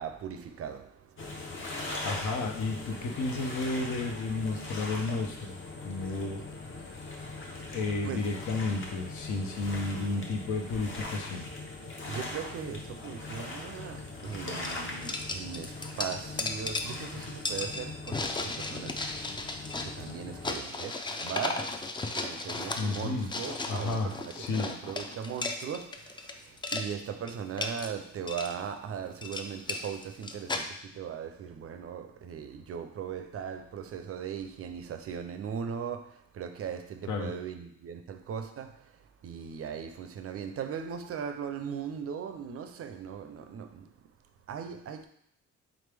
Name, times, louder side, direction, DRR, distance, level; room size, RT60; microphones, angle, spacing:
voice 1, 0.0-2.4 7.6-8.2 12.1-19.2 19.8-44.1 44.5-45.1, right 7 dB, 50° right, 0.5 m, -39 dB
sound 1, 1.2-20.6, left 2 dB, 40° left, 0.9 m, -41 dB
voice 2, 2.0-6.4 7.7-11.5 22.8-23.3 23.7-24.1 24.4-24.7 37.1-37.3, left 3 dB, 70° left, 0.8 m, -32 dB
sound 2, 14.2-14.4 14.6-26.3 26.6-26.9 27.3-27.9 28.3-28.5 29.0-30.7, left 3 dB, 15° left, 0.3 m, -35 dB
3.7 x 3.3 x 3.4 m
cardioid pair, 90°, 30 cm